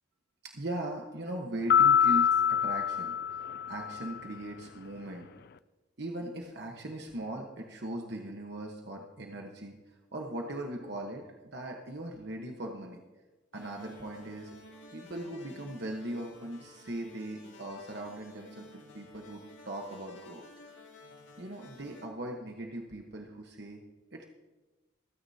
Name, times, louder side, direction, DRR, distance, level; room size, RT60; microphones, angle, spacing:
voice 1, 0.4-5.3 6.0-13.0 13.5-14.6 14.9-20.5 21.4-23.8 24.1-24.2, right 1 dB, 55° right, 1 dB, 1.1 m, -39 dB
sound 1, 1.7-4.2, left 8 dB, 50° left, 0.3 m, -25 dB
sound 2, 13.5-22.1, left 2 dB, 70° left, 2.2 m, -53 dB
26.0 x 9.7 x 2.8 m, 1.2 s
head